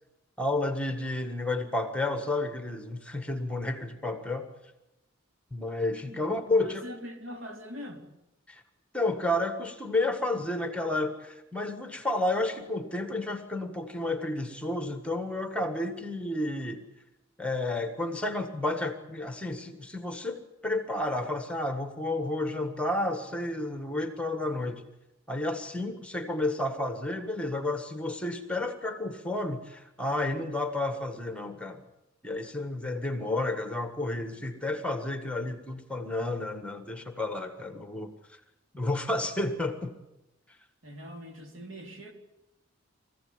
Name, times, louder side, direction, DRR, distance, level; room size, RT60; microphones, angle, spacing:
voice 1, 0.4-4.5 5.5-6.8 8.5-8.6 8.9-16.8 17.4-24.8 25.3-31.8 32.2-38.1 38.7-39.9, left 2 dB, 5° left, 7 dB, 1.7 m, -31 dB
voice 2, 6.5-8.0 40.8-42.1, equal, 75° right, 3 dB, 3.7 m, -42 dB
24.0 x 15.5 x 9.7 m, 0.92 s
head